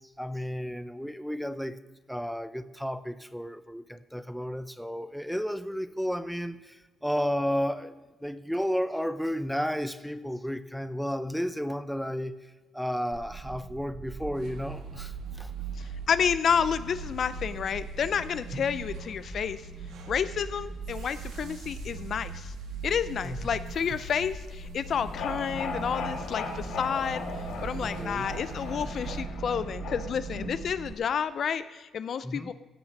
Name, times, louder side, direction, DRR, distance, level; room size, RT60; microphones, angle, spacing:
voice 1, 0.2-1.8 2.1-7.9 8.2-12.4 12.7-15.5 18.5-18.6 23.2-23.4 27.8-28.3 32.2-32.5, equal, ahead, 12 dB, 0.6 m, -32 dB
sound 1, 13.1-30.9, right 7 dB, 45° right, 0.5 m, -41 dB
sound 2, 14.3-29.2, equal, 80° right, 1.7 m, -44 dB
voice 2, 15.8-19.6 20.1-22.5 22.8-27.2 27.6-32.5, left 7 dB, 60° left, 14 dB, 0.5 m, -30 dB
sound 3, 24.9-31.0, left 3 dB, 85° left, 1.8 m, -37 dB
16.0 x 5.9 x 6.5 m, 1.2 s
cardioid pair, 90°, 0 cm